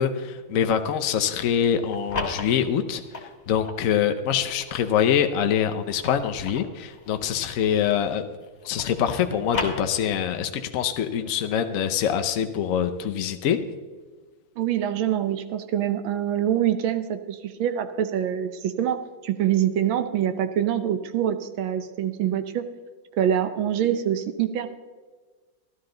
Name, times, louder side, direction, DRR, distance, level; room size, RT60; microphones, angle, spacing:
voice 1, 0.0-8.2 8.6-13.6, left 8 dB, 80° left, 7 dB, 0.7 m, -24 dB
sound 1, 1.7-3.8 4.4-8.1 8.4-10.4, left 3 dB, 45° left, 2.0 m, -36 dB
voice 2, 14.6-22.6 23.2-24.7, right 10 dB, 80° right, 9 dB, 1.6 m, -25 dB
12.5 x 12.5 x 3.8 m, 1.4 s
omnidirectional pair, 2.2 m